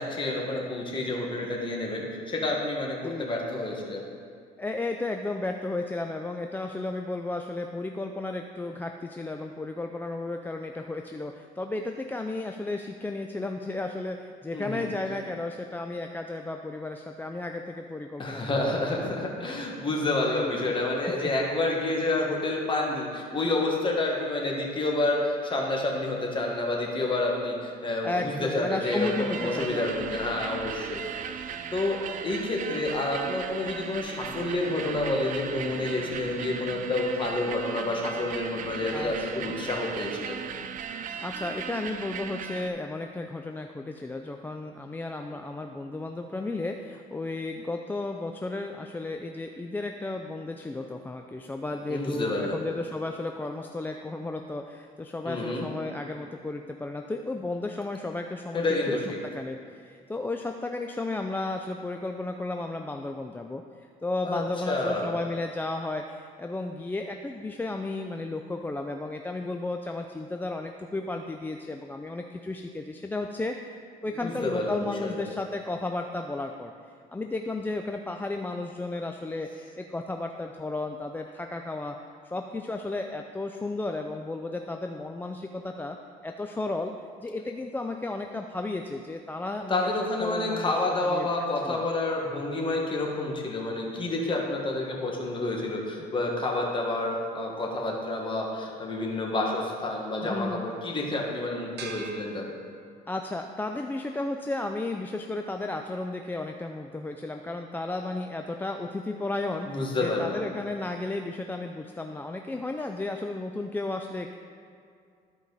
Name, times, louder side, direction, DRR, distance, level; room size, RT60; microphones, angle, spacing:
voice 1, 0.0-4.0 14.5-14.8 18.2-31.0 31.3-31.4 31.7-40.4 51.9-52.7 55.2-55.7 58.5-59.2 64.2-65.1 74.2-75.3 89.7-102.4 109.7-110.4, left 2 dB, 30° left, -1 dB, 1.6 m, -29 dB
voice 2, 4.6-18.8 20.3-20.8 28.0-30.1 38.9-39.4 41.2-59.0 59.3-73.6 74.0-76.7 77.1-82.0 82.2-86.0 86.2-86.9 87.2-90.7 91.0-91.3 91.6-91.8 100.2-100.7 103.1-114.3, left 2 dB, 10° left, 4 dB, 0.3 m, -33 dB
sound 1, 28.8-42.7, right 7 dB, 50° right, 0.4 m, -37 dB
sound 2, 101.8-103.3, right 5 dB, 75° right, 1.1 m, -42 dB
13.0 x 4.7 x 4.0 m, 2.2 s
cardioid pair, 110°, 17 cm